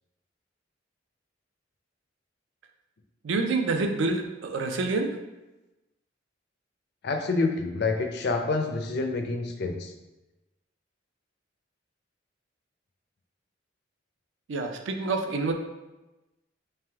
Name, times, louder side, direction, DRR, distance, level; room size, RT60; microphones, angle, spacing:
voice 1, 3.2-5.1 14.5-15.5, right 3 dB, 70° right, 4 dB, 0.4 m, -27 dB
voice 2, 7.0-9.9, left 3 dB, 55° left, 5 dB, 0.4 m, -27 dB
3.3 x 3.3 x 3.4 m, 1.0 s
head